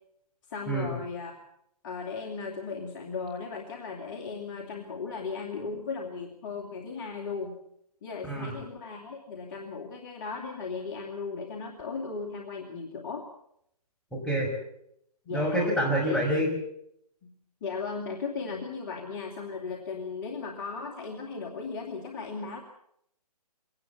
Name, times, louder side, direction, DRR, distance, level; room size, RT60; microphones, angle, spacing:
voice 1, 0.5-1.4 1.8-7.6 8.0-13.3 15.3-15.7 16.0-16.2 17.2-17.3 17.6-22.6, left 4 dB, 30° left, 0 dB, 2.6 m, -36 dB
voice 2, 14.1-14.5 15.3-16.5, right 1 dB, 5° left, -2 dB, 5.6 m, -27 dB
22.5 x 18.0 x 7.2 m, 0.73 s
figure-of-eight pair, 145°, 20 cm